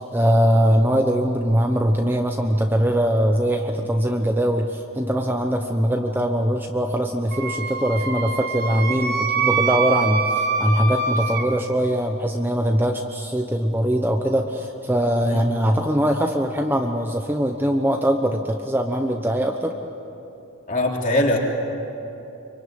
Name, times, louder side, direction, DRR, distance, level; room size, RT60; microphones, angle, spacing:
voice 1, 0.0-19.7, equal, 10° right, 3 dB, 1.0 m, -21 dB
Wind instrument woodwind instrument, 7.3-11.5, right 4 dB, 45° right, 1.7 m, -24 dB
voice 2, 20.7-21.4, left 1 dB, 35° left, -1 dB, 3.5 m, -21 dB
26.0 x 24.5 x 9.2 m, 2.9 s
head